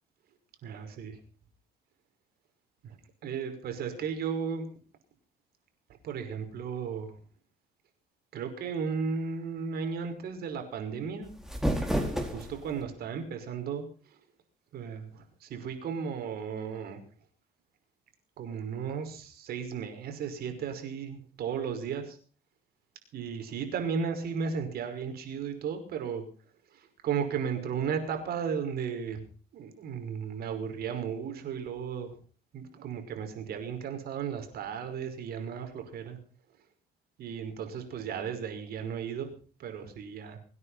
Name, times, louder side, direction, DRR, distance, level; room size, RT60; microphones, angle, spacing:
voice 1, 0.6-1.2 2.8-3.0 3.2-4.7 6.0-7.1 8.3-11.3 12.2-13.9 14.7-17.0 18.4-22.2 23.1-26.2 26.7-29.2 29.5-32.1 32.5-36.2 37.2-39.3 39.6-40.4, right 6 dB, 65° right, 6 dB, 5.6 m, -35 dB
Crumpling to floor, 11.2-12.8, equal, ahead, 4.2 m, -31 dB
25.0 x 9.8 x 5.7 m, 0.41 s
cardioid pair, 110°, 17 cm